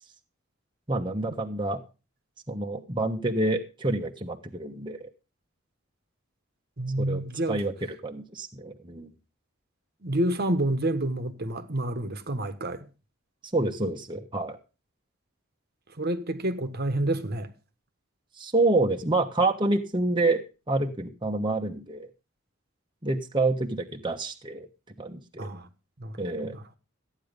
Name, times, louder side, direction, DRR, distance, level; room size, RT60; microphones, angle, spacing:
voice 1, 0.9-1.8 2.5-5.1 7.0-7.2 7.5-7.7 8.0-9.1 13.5-14.6 18.4-22.1 23.0-24.7 25.0-25.5 26.2-26.6, right 2 dB, 25° right, 1.2 m, -27 dB
voice 2, 6.8-7.6 10.0-12.9 16.0-17.5 25.4-25.7 26.0-26.2 26.4-26.6, right 1 dB, 50° right, 1.4 m, -28 dB
14.5 x 9.5 x 5.2 m
head